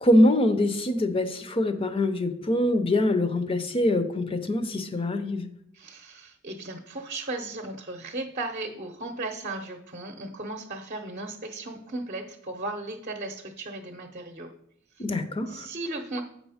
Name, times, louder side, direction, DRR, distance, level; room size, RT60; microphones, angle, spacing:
voice 1, 0.0-5.5 15.0-15.7, left 1 dB, 30° left, 9 dB, 0.6 m, -24 dB
voice 2, 5.7-14.5 14.9-15.0 15.5-16.2, right 2 dB, 45° right, 3 dB, 0.7 m, -36 dB
7.6 x 5.3 x 4.9 m, 0.72 s
head